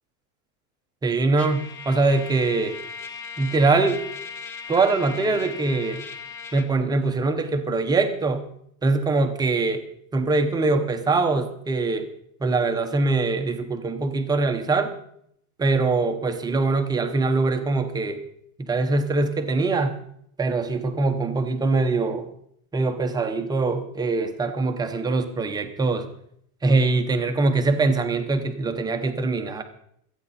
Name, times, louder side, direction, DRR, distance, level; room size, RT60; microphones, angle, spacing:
voice 1, 1.0-2.8 3.4-4.0 4.7-6.0 6.5-8.4 8.8-9.8 10.1-12.1 12.4-14.9 15.6-18.2 18.6-20.0 20.4-22.3 22.7-26.1 26.6-29.6, right 3 dB, 10° right, 6 dB, 0.7 m, -23 dB
Trumpet, 1.4-6.7, left 5 dB, 25° left, 0.9 m, -38 dB
25.5 x 8.9 x 4.1 m, 0.71 s
supercardioid pair, 165°, 45 cm